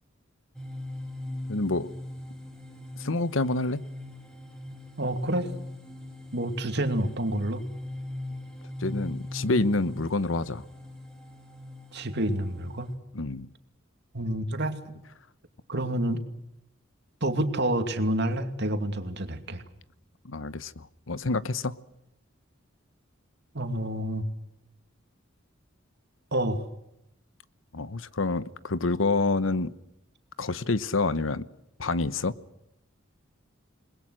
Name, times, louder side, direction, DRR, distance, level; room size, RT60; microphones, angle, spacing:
sound 1, 0.5-12.9, left 1 dB, 5° left, 5.1 m, -40 dB
voice 1, 1.5-1.9 3.0-3.8 8.8-10.6 13.1-13.5 20.2-21.7 27.7-29.7 30.4-31.4 31.8-32.3, left 3 dB, 85° left, 15 dB, 1.1 m, -27 dB
voice 2, 5.0-5.5 6.3-7.6 11.9-12.9 14.1-14.8 15.7-16.2 17.2-19.6 23.5-24.2 26.3-26.6, right 1 dB, 60° right, 7 dB, 2.6 m, -28 dB
28.5 x 21.0 x 6.4 m, 0.82 s
head